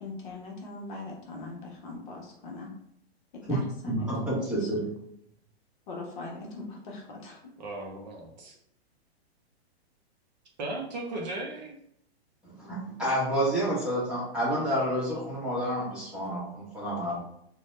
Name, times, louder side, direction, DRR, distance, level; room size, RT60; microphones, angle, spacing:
voice 1, 0.0-2.7 3.3-4.7 5.9-7.4, left 3 dB, 45° left, -1 dB, 0.9 m, -41 dB
voice 2, 3.5-4.9 12.4-17.2, right 1 dB, 5° right, -9 dB, 0.9 m, -29 dB
voice 3, 7.6-8.6 10.6-11.8, right 2 dB, 40° right, 0 dB, 0.5 m, -36 dB
2.7 x 2.2 x 3.1 m, 0.73 s
hypercardioid pair, 150°, 33 cm